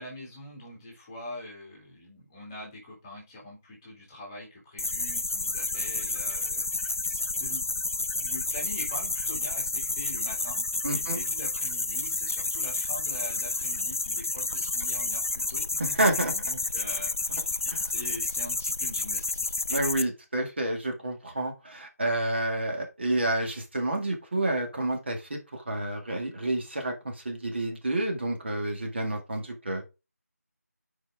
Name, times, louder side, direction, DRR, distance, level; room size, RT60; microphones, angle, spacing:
voice 1, 0.0-7.7 8.2-10.7 10.9-16.0 16.3-19.4, left 1 dB, 10° left, -2 dB, 2.0 m, -44 dB
sound 1, 4.8-20.0, left 3 dB, 55° left, 0.7 m, -30 dB
voice 2, 10.8-11.2 15.8-16.3 17.7-17.9 19.7-29.8, right 1 dB, 40° right, 3 dB, 2.0 m, -29 dB
8.3 x 4.6 x 3.5 m, 0.27 s
figure-of-eight pair, 170°, 9 cm